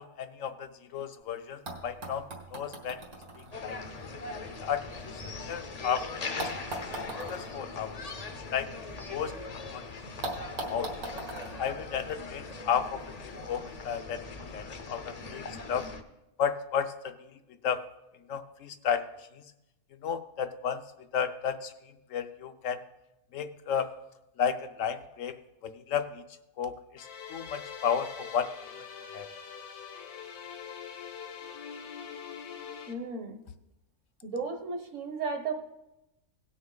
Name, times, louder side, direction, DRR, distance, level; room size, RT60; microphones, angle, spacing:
voice 1, 0.0-3.0 3.6-4.1 4.6-5.2 5.5-6.5 7.3-8.0 8.5-8.7 9.1-9.3 9.7-9.8 10.2-10.3 10.7-10.9 11.6-14.2 14.5-15.4 15.7-15.9 16.4-17.1 17.6-17.8 18.3-19.1 20.0-20.8 21.1-21.7 22.1-22.8 23.3-23.9 24.4-25.3 25.6-26.2 26.6-28.5 29.1-29.3, left 7 dB, 70° left, 9 dB, 1.0 m, -33 dB
sound 1, 1.2-1.3 1.7-5.7 6.4-9.3 9.6-9.7 10.2-12.6 13.6-13.7, right 2 dB, 80° right, 2.2 m, -42 dB
sound 2, 3.5-16.0, left 3 dB, 40° left, 0.5 m, -41 dB
sound 3, 27.0-32.9, left 7 dB, 85° left, 1.5 m, -43 dB
voice 2, 32.9-33.4 34.2-35.5, right 4 dB, 60° right, 7 dB, 1.3 m, -34 dB
17.0 x 6.3 x 3.9 m, 0.91 s
omnidirectional pair, 1.5 m